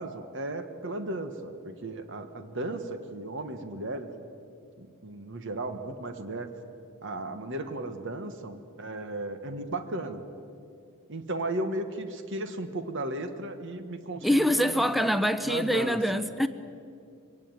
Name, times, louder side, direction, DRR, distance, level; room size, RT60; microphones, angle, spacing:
voice 1, 0.0-4.1 4.8-6.5 7.0-10.3 11.1-15.1 15.4-16.2, right 2 dB, 55° right, 8 dB, 1.4 m, -35 dB
voice 2, 14.2-16.5, equal, ahead, 11 dB, 0.6 m, -25 dB
22.5 x 17.5 x 9.0 m, 2.4 s
head